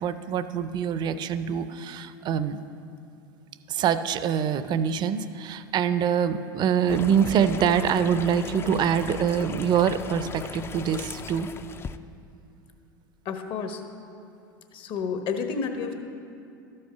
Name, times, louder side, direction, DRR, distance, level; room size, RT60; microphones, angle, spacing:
voice 1, 0.0-2.6 3.7-11.5, right 8 dB, 40° right, 12 dB, 0.5 m, -25 dB
sound 1, 6.9-12.0, left 5 dB, 20° left, 0.3 m, -38 dB
voice 2, 13.2-13.8 14.7-15.9, left 5 dB, 50° left, 6 dB, 1.0 m, -30 dB
12.5 x 5.5 x 5.6 m, 2.6 s
hypercardioid pair, 90°, 11 cm